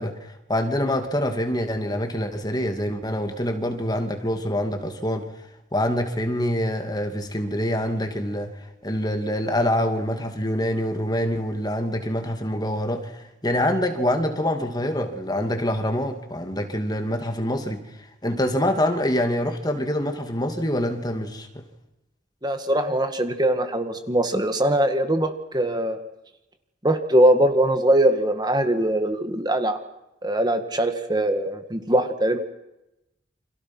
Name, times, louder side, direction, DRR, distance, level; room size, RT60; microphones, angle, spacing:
voice 1, 0.0-5.3 5.7-8.5 8.8-17.8 18.2-21.6, left 1 dB, 20° left, 2.7 m, -25 dB
voice 2, 22.4-26.0 26.8-29.8 30.2-32.4, right 1 dB, 25° right, 1.9 m, -21 dB
29.5 x 27.0 x 6.3 m
head